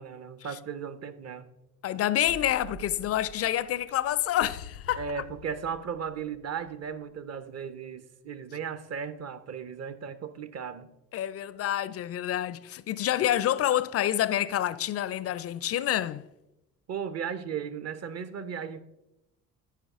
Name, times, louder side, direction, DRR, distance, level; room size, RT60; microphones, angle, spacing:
voice 1, 0.0-1.5 4.9-10.9 16.9-18.8, right 7 dB, 35° right, 0.9 m, -36 dB
voice 2, 1.8-5.0 11.1-16.2, left 12 dB, 35° left, 0.5 m, -28 dB
sound 1, 2.2-5.9 6.2-6.3, right 6 dB, 85° right, 0.9 m, -49 dB
sound 2, 4.4-7.4, left 9 dB, 85° left, 0.7 m, -47 dB
13.5 x 5.3 x 3.6 m
figure-of-eight pair, 50°, 44 cm